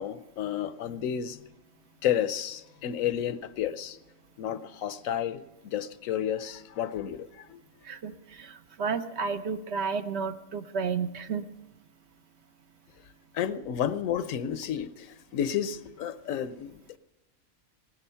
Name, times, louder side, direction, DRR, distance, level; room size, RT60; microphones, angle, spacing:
voice 1, 0.0-1.4 2.0-4.0 4.4-5.4 5.7-7.6 13.3-15.1 15.3-16.7, left 9 dB, 75° left, 14 dB, 1.0 m, -31 dB
voice 2, 7.8-11.5, right 5 dB, 60° right, 10 dB, 0.9 m, -32 dB
17.5 x 9.8 x 5.7 m, 1.0 s
omnidirectional pair, 1.4 m